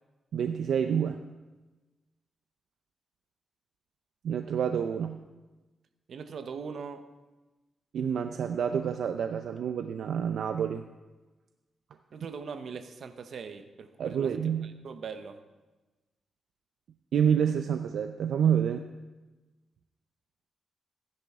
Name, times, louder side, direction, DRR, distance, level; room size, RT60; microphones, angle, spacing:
voice 1, 0.3-1.2 4.2-5.2 7.9-10.8 14.0-14.8 17.1-18.8, right 8 dB, 70° right, 7 dB, 0.5 m, -28 dB
voice 2, 6.1-7.1 12.1-15.4, right 5 dB, 55° right, 8 dB, 0.8 m, -41 dB
15.0 x 10.5 x 3.6 m, 1.2 s
wide cardioid pair, 165°, 0 cm